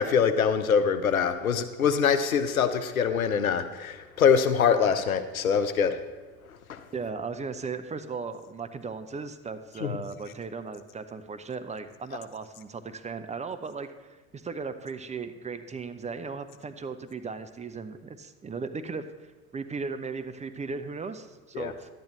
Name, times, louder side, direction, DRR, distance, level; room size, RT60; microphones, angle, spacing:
voice 1, 0.0-6.0 6.7-6.8 9.8-9.9 21.5-21.7, left 6 dB, 90° left, 10 dB, 0.6 m, -24 dB
voice 2, 6.9-19.0 19.5-21.9, right 4 dB, 15° right, 9 dB, 0.5 m, -37 dB
11.5 x 9.1 x 3.2 m, 1.3 s
figure-of-eight pair, 65°, 41 cm